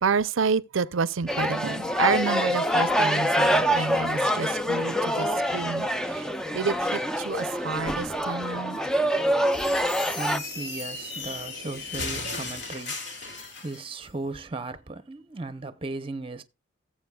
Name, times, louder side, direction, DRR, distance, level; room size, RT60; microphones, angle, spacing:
voice 1, 0.0-8.8, right 5 dB, 80° right, 0.6 m, -29 dB
sound 1, 1.3-10.4, equal, 5° left, 0.4 m, -25 dB
sound 2, 9.4-13.9, left 3 dB, 60° left, 2.7 m, -36 dB
voice 2, 9.8-16.4, right 2 dB, 25° right, 0.7 m, -37 dB
17.0 x 7.5 x 2.3 m
head